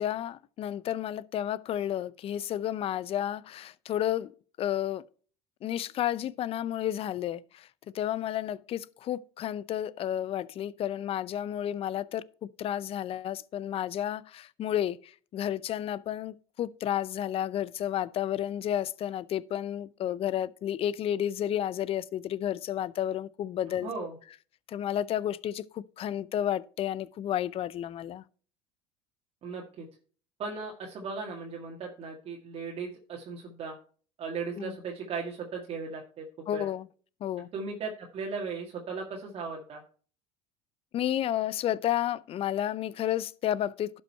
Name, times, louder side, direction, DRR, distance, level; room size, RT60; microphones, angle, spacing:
voice 1, 0.0-4.3 4.6-5.0 5.6-23.9 24.7-28.2 34.6-34.8 36.5-36.9 37.2-37.5 40.9-44.0, left 11 dB, 45° left, 0.5 m, -31 dB
voice 2, 23.8-24.1 29.4-29.9 30.4-33.7 34.2-36.2 36.5-36.7 37.5-39.8, right 4 dB, 45° right, 1.8 m, -37 dB
11.5 x 5.4 x 4.4 m
supercardioid pair, 90°, 14 cm